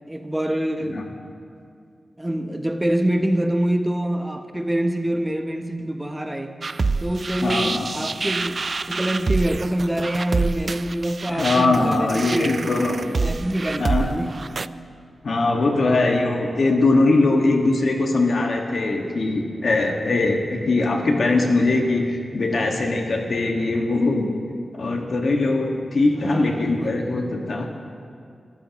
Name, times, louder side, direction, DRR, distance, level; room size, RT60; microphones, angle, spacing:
voice 1, 0.1-1.1 2.2-6.5 7.0-8.6 8.9-12.7 13.0-14.6 26.1-27.2, right 1 dB, 10° right, 6 dB, 0.8 m, -25 dB
sound 1, 6.6-14.7, right 4 dB, 45° right, 0.3 m, -27 dB
voice 2, 7.4-7.9 11.3-13.2 13.8-14.1 15.2-24.3 24.7-27.7, left 2 dB, 65° left, 2 dB, 1.7 m, -21 dB
27.0 x 14.0 x 3.0 m, 2.4 s
wide cardioid pair, 90°, 0 cm